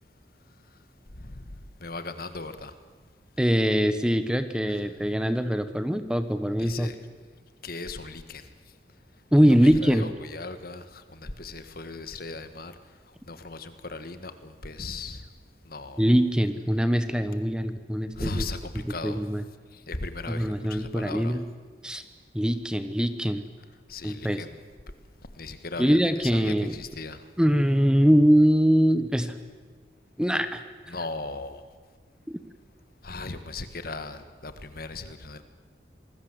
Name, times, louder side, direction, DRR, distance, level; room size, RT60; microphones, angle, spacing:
voice 1, 1.2-1.5 1.8-2.7 4.7-4.8 6.6-7.0 7.6-8.5 9.6-12.7 13.3-15.3 15.7-16.1 18.2-19.2 19.7-21.4 23.9-24.6 25.4-27.2 30.9-31.6 33.0-35.4, left 3 dB, 55° left, 10 dB, 1.7 m, -37 dB
voice 2, 3.4-6.9 9.3-10.1 16.0-18.4 19.0-19.4 20.3-21.4 21.8-22.0 22.3-23.4 24.0-24.4 25.8-26.7 27.4-29.4 30.2-30.9, equal, 5° right, 10 dB, 1.1 m, -23 dB
27.0 x 20.0 x 7.9 m, 1.5 s
head